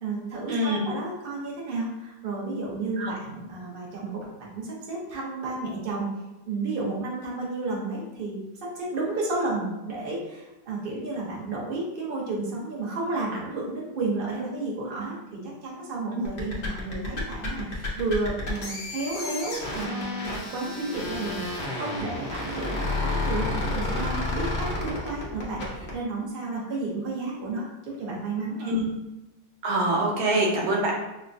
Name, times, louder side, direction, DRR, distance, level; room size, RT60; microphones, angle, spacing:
voice 1, 0.0-6.1 6.4-28.7, right 3 dB, 55° right, -4 dB, 0.6 m, -32 dB
sound 1, 16.2-26.0, left 2 dB, 80° left, 0.4 m, -31 dB
voice 2, 29.6-30.9, right 1 dB, 80° right, -2 dB, 1.6 m, -24 dB
5.6 x 2.2 x 2.6 m, 0.98 s
omnidirectional pair, 2.2 m